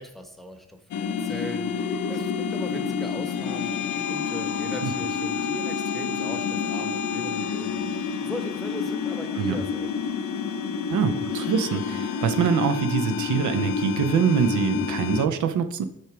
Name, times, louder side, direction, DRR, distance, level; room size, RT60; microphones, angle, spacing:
voice 1, 0.0-7.8 8.2-10.1, equal, ahead, 4 dB, 0.9 m, -39 dB
sound 1, 0.9-15.3, left 6 dB, 70° left, 0.6 m, -28 dB
voice 2, 10.9-15.8, right 7 dB, 75° right, 9 dB, 0.7 m, -24 dB
6.3 x 4.5 x 4.9 m, 0.75 s
cardioid pair, 105°, 29 cm